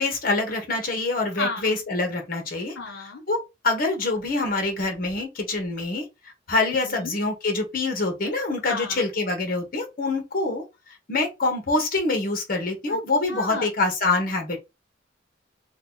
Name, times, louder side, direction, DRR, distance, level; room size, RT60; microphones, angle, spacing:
voice 1, 0.0-2.7 3.3-10.6 11.1-14.6, left 3 dB, 50° left, 1.0 m, -25 dB
voice 2, 1.4-1.7 2.8-3.2 6.9-7.1 8.7-9.0 12.9-13.0 13.3-13.6, left 3 dB, 75° left, 0.6 m, -32 dB
2.9 x 2.2 x 3.6 m
head